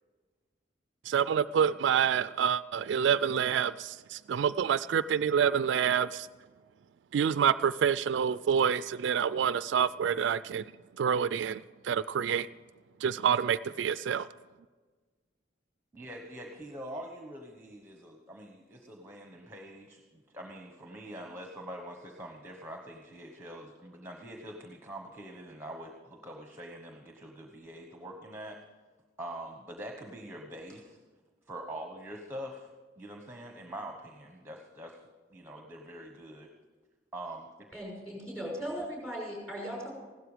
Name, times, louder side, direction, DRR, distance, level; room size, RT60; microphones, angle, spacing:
voice 1, 1.1-6.3 7.1-10.6 11.0-12.5 13.0-14.3, right 7 dB, 70° right, 15 dB, 0.3 m, -27 dB
voice 2, 15.9-28.6 29.2-31.0 31.5-32.7 33.0-35.0 35.3-36.5 37.1-37.5, right 1 dB, 15° right, 2 dB, 1.1 m, -44 dB
voice 3, 37.7-39.9, equal, 5° left, -2 dB, 6.0 m, -38 dB
16.0 x 12.5 x 5.0 m, 1.4 s
head